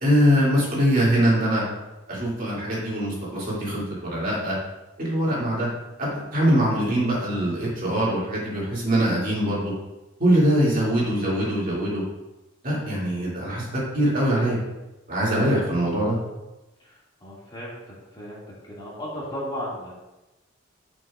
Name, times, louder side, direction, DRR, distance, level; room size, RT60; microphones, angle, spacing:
voice 1, 0.0-1.6 2.1-4.6 5.0-5.7 6.0-9.7 10.2-12.0 12.6-14.6 15.1-16.2, equal, 40° right, -6 dB, 2.3 m, -23 dB
voice 2, 16.8-18.4 18.7-19.9, equal, 20° left, -7 dB, 2.0 m, -35 dB
11.0 x 5.3 x 2.4 m, 1.0 s
head